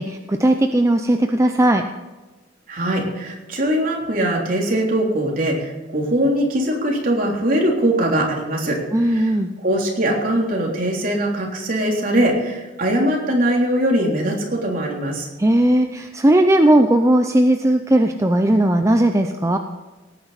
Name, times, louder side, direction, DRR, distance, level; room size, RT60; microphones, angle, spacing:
voice 1, 0.0-1.8 8.9-9.5 15.4-19.6, right 1 dB, 15° right, 5 dB, 0.6 m, -17 dB
voice 2, 2.7-15.3, right 1 dB, 50° right, -1 dB, 3.4 m, -21 dB
18.0 x 9.6 x 4.2 m, 1.2 s
head